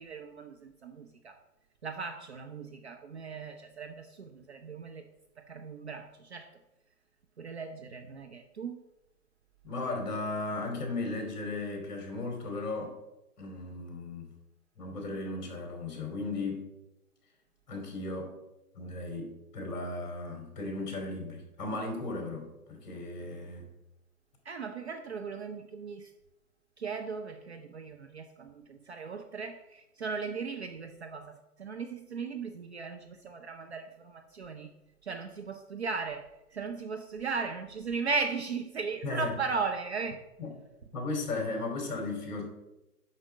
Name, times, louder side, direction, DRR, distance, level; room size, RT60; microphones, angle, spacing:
voice 1, 0.0-1.4 1.8-5.1 5.5-6.5 7.4-8.8 24.5-26.1 26.8-34.7 35.0-40.2, right 5 dB, 45° right, 6 dB, 0.7 m, -37 dB
voice 2, 9.6-13.0 13.4-14.3 14.8-16.7 17.7-18.4 18.8-23.7 39.0-39.4 40.4-40.6 40.9-42.5, left 2 dB, 30° left, 2 dB, 2.8 m, -36 dB
6.5 x 5.8 x 7.3 m, 0.94 s
figure-of-eight pair, 145°, 47 cm